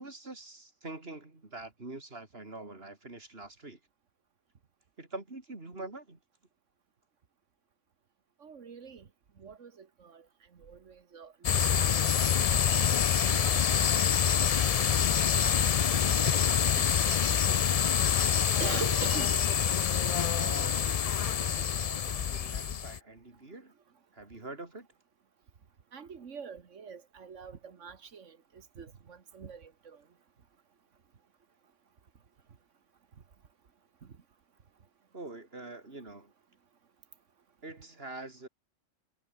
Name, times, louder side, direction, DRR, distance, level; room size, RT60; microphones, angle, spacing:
voice 1, 0.0-3.8 5.0-6.2 20.4-21.1 21.6-23.7 24.1-24.9 35.1-36.3 37.6-38.5, right 2 dB, 50° right, 4.0 m, -45 dB
voice 2, 8.4-9.0 9.4-10.2 10.6-12.3 12.7-12.8 16.8-16.9 18.6-19.3 25.9-28.4 28.8-30.0, right 6 dB, 75° right, 1.8 m, -43 dB
sound 1, 11.4-23.0, left 8 dB, 50° left, 0.4 m, -26 dB
omnidirectional pair, 1.3 m